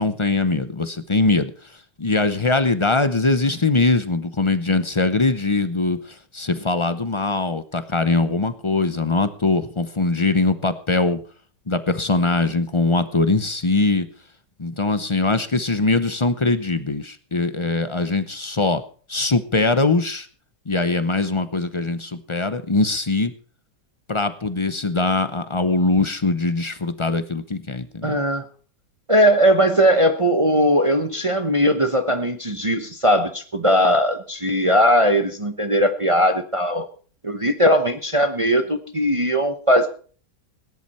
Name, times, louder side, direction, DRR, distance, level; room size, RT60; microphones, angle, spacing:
voice 1, 0.0-1.5 2.0-6.0 6.3-11.2 11.7-14.1 14.6-18.8 19.1-20.3 20.7-23.3 24.1-28.2, left 3 dB, 35° left, 11 dB, 0.4 m, -21 dB
voice 2, 28.0-28.5 29.1-36.9 37.2-39.9, equal, 25° right, 7 dB, 0.8 m, -19 dB
17.5 x 11.0 x 4.3 m, 0.41 s
omnidirectional pair, 1.8 m